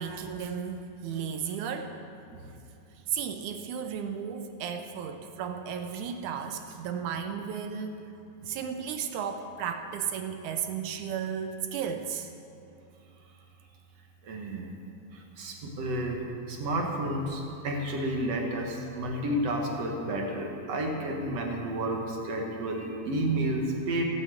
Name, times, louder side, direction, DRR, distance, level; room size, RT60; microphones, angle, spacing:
voice 1, 0.0-1.9 3.1-8.0 8.5-12.3, right 7 dB, 75° right, 6 dB, 2.1 m, -34 dB
voice 2, 14.2-14.8 15.1-16.2 16.5-24.0, right 1 dB, 60° right, 1 dB, 2.3 m, -31 dB
16.0 x 7.8 x 7.9 m, 2.7 s
omnidirectional pair, 3.6 m